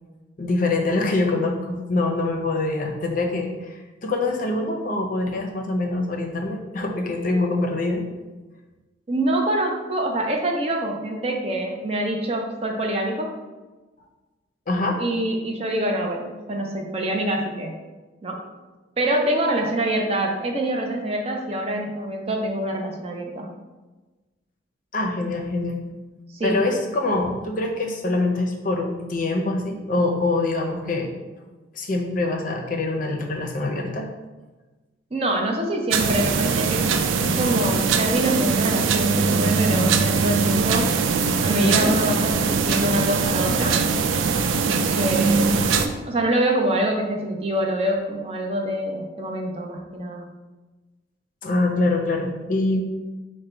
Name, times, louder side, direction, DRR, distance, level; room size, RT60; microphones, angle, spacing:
voice 1, 0.4-8.0 14.7-15.0 24.9-25.8 26.4-31.1 31.7-34.1 41.6-41.9 51.4-52.8, left 2 dB, 45° left, 1 dB, 0.5 m, -24 dB
voice 2, 9.1-13.3 15.0-17.8 18.2-18.4 19.0-23.5 26.4-26.6 35.1-36.9 37.2-40.9 41.4-43.8 44.9-45.5 46.0-50.3, right 1 dB, 30° right, 1 dB, 0.5 m, -25 dB
sound 1, 35.9-45.9, right 5 dB, 90° right, 0.4 m, -21 dB
4.9 x 2.2 x 4.4 m, 1.2 s
head